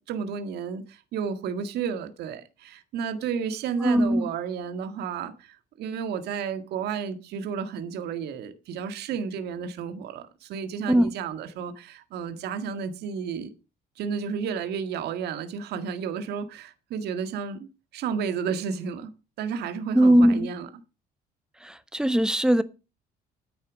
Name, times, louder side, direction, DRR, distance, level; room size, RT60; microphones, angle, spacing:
voice 1, 0.0-13.5 14.0-19.1 19.4-20.7, right 6 dB, 75° right, 1.8 m, -32 dB
voice 2, 3.8-4.3 10.9-11.1 19.9-20.5 21.6-22.6, equal, 5° right, 1.1 m, -20 dB
10.0 x 8.7 x 6.2 m
cardioid pair, 110°, 17 cm